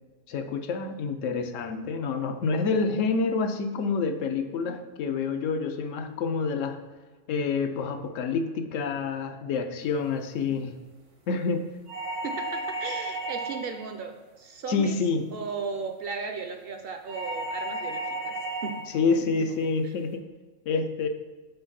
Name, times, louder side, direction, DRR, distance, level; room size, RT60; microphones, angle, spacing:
voice 1, 0.3-6.8 7.3-10.7 11.3-11.7 14.7-15.2 18.9-20.2 20.7-21.1, left 4 dB, 85° left, 7 dB, 1.0 m, -28 dB
sound 1, 11.9-13.8 17.1-18.9, right 2 dB, 80° right, 1.5 m, -33 dB
voice 2, 12.2-15.0 15.3-18.4 18.6-18.9 19.4-19.5, right 5 dB, 60° right, 6 dB, 0.7 m, -36 dB
5.4 x 3.9 x 5.8 m, 1.3 s
omnidirectional pair, 1.3 m